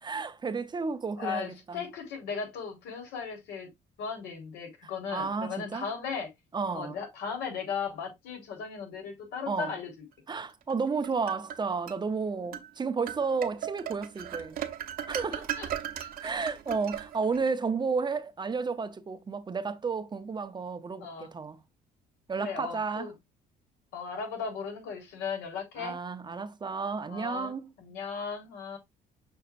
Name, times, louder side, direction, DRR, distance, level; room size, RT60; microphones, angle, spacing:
voice 1, 0.0-1.8 5.1-5.9 6.5-7.0 9.5-9.8 10.3-14.6 15.1-15.5 16.2-21.6 22.3-23.1 25.8-27.7, right 4 dB, 25° right, 0.7 m, -32 dB
voice 2, 1.2-3.7 4.0-6.3 6.7-9.9 15.3-15.7 16.0-16.1 21.0-21.3 22.4-23.1 23.9-25.9 27.1-28.8, left 6 dB, 85° left, 3.6 m, -37 dB
sound 1, 10.7-12.0 12.5-12.7 13.1-17.5, right 10 dB, 60° right, 1.0 m, -37 dB
6.8 x 5.6 x 2.5 m
cardioid pair, 110°, 17 cm